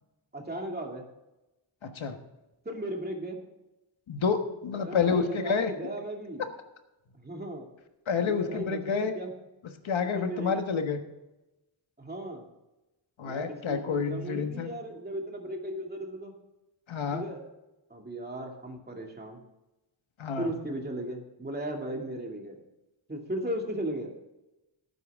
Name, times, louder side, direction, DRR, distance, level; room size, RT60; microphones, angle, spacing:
voice 1, 0.3-1.1 2.6-3.4 4.8-6.5 7.2-7.7 8.2-9.3 10.1-10.7 12.0-12.5 13.2-16.3 17.1-17.4 17.9-19.4 20.4-22.6 23.1-24.1, right 1 dB, 20° right, 1 dB, 2.4 m, -36 dB
voice 2, 1.8-2.2 4.1-5.7 8.1-9.1 9.8-11.0 13.2-14.7 16.9-17.2 20.2-20.5, left 5 dB, 75° left, 6 dB, 1.4 m, -29 dB
17.5 x 9.4 x 3.6 m, 0.98 s
wide cardioid pair, 135°, 47 cm